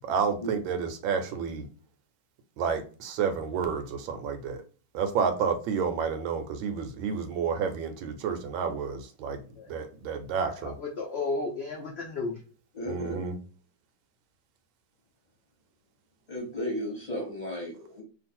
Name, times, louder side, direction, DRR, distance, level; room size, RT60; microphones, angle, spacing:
voice 1, 0.0-1.6 2.6-4.6 4.9-9.4 9.7-10.7 12.9-13.3, right 6 dB, 80° right, 8 dB, 1.4 m, -30 dB
voice 2, 10.5-12.4, left 3 dB, 75° left, -2 dB, 0.5 m, -33 dB
voice 3, 12.8-13.2 16.3-18.0, equal, 25° left, -3 dB, 1.2 m, -34 dB
3.1 x 2.5 x 4.2 m, 0.38 s
omnidirectional pair, 2.1 m